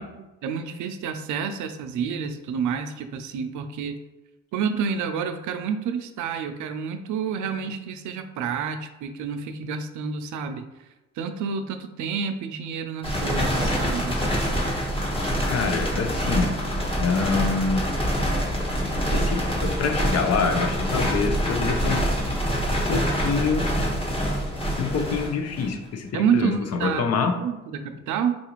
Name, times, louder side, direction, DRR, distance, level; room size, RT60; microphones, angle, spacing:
voice 1, 0.0-4.0 4.5-10.7 11.2-14.2 26.1-27.0 27.4-28.4, right 7 dB, 75° right, 7 dB, 0.5 m, -29 dB
sound 1, 13.0-25.9, equal, 20° left, 1.2 m, -25 dB
voice 2, 15.4-16.6 17.0-17.9 19.1-22.1 22.9-23.7 24.8-27.3, left 5 dB, 55° left, 5 dB, 0.6 m, -26 dB
4.0 x 2.4 x 3.0 m, 1.1 s
cardioid pair, 90°, 30 cm